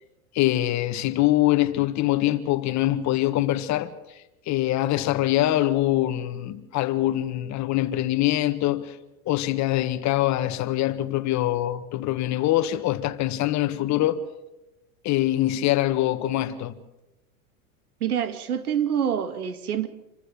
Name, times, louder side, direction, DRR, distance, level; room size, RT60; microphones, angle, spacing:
voice 1, 0.3-3.9 4.5-9.0 9.3-14.2 15.0-16.8, left 14 dB, 40° left, 1.7 m, -24 dB
voice 2, 18.0-19.9, right 9 dB, 85° right, 2.2 m, -26 dB
27.5 x 15.0 x 8.0 m
hypercardioid pair, 110°, 43 cm